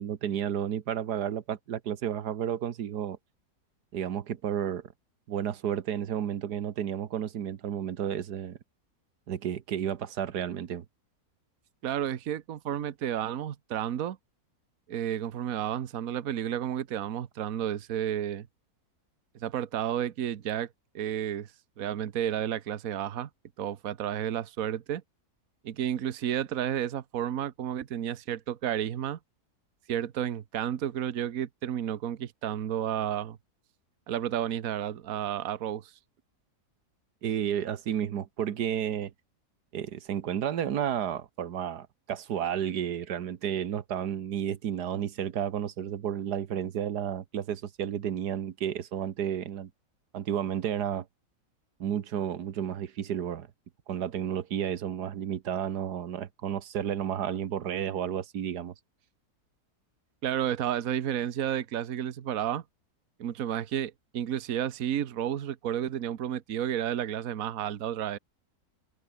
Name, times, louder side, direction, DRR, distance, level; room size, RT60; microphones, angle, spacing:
voice 1, 0.0-3.2 3.9-4.9 5.3-8.6 9.3-10.8 37.2-39.1 39.7-49.7 50.1-51.1 51.8-53.5 53.9-58.7, right 9 dB, 90° right, 1.7 m, -32 dB
voice 2, 11.8-14.2 14.9-18.5 19.4-20.7 20.9-21.5 21.8-23.3 23.6-25.0 25.6-29.2 29.9-33.4 34.1-35.9 60.2-62.6 63.2-68.2, right 10 dB, 65° right, 1.4 m, -31 dB
omnidirectional pair, 1.7 m